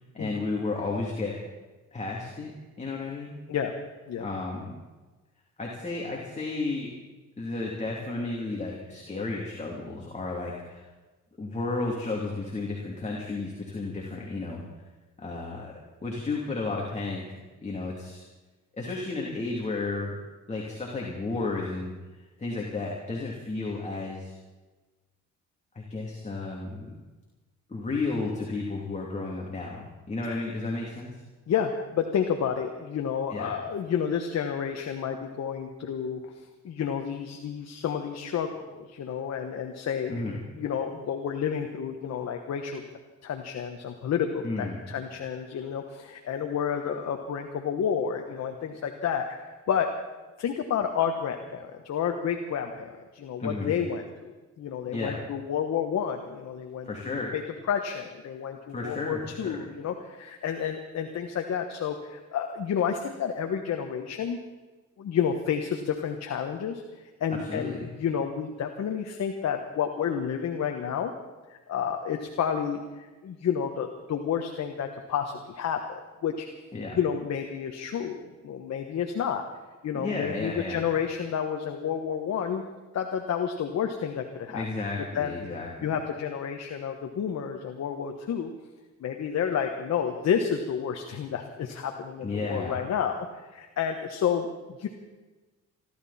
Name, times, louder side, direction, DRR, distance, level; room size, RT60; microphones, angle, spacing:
voice 1, 0.1-1.4 1.9-2.5 2.8-3.4 4.2-4.7 5.6-6.9 7.4-10.9 11.4-14.6 15.2-15.7 16.0-18.2 18.8-20.1 20.5-21.9 22.4-24.4 25.7-26.8 27.7-31.2 33.3-33.5 40.1-40.4 44.4-44.8 53.4-53.7 54.9-55.2 56.8-57.3 58.7-59.5 67.4-67.9 76.7-77.0 79.9-80.9 84.5-85.9 92.2-92.8, left 3 dB, 25° left, -2 dB, 3.0 m, -33 dB
voice 2, 31.5-36.3 36.6-40.2 40.6-42.8 43.2-49.9 50.4-54.1 54.6-57.4 57.7-64.4 65.0-71.1 71.5-76.5 77.0-79.4 79.8-82.6 82.9-84.6 85.1-85.3 85.8-88.5 89.0-94.5 94.8-94.9, left 7 dB, 60° left, 4 dB, 1.3 m, -30 dB
26.0 x 12.5 x 4.3 m, 1.2 s
cardioid pair, 90°, 30 cm